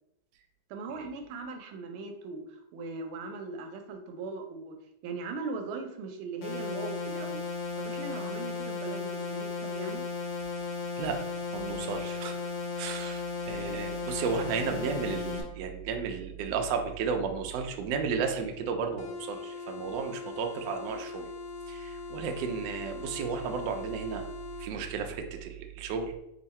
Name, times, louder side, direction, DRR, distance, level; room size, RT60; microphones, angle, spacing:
voice 1, 0.7-4.8 5.0-7.4 7.8-10.0, right 3 dB, 90° right, 5 dB, 1.5 m, -39 dB
sound 1, 6.4-15.4, left 4 dB, 65° left, 1.0 m, -35 dB
voice 2, 11.5-12.4 12.8-21.3 21.7-24.2 24.6-26.1, right 5 dB, 70° right, 4 dB, 1.1 m, -33 dB
sound 2, 19.0-24.7, left 4 dB, 80° left, 1.4 m, -41 dB
3.6 x 2.5 x 4.1 m, 0.84 s
omnidirectional pair, 2.3 m